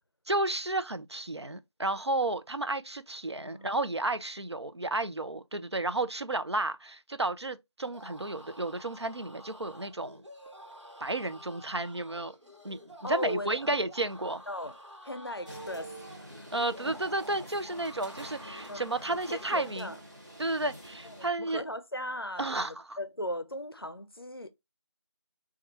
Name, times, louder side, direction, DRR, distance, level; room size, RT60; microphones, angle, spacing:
voice 1, 0.3-10.2 11.0-12.4 12.6-14.4 16.5-19.9 20.4-21.6 22.4-23.0, right 2 dB, 65° right, 0.5 m, -32 dB
sound 1, 7.8-19.9, equal, 80° right, 1.2 m, -50 dB
voice 2, 13.0-13.8 14.5-14.8 15.0-16.5 18.7-20.0 21.0-24.5, left 1 dB, 55° left, 0.5 m, -38 dB
sound 2, 15.5-21.3, right 1 dB, 40° right, 1.0 m, -47 dB
4.6 x 2.3 x 2.8 m
figure-of-eight pair, 180°, 15 cm